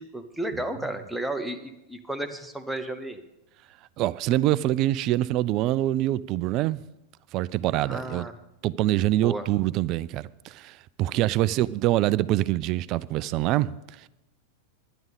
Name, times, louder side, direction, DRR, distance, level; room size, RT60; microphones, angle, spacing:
voice 1, 0.0-3.2 7.9-8.3 9.2-9.5 11.5-11.7, right 1 dB, ahead, 1.0 m, -33 dB
voice 2, 4.0-6.8 7.3-8.2 8.6-13.7, right 15 dB, 40° right, 0.3 m, -25 dB
11.0 x 11.0 x 5.2 m
figure-of-eight pair, 90°, 0 cm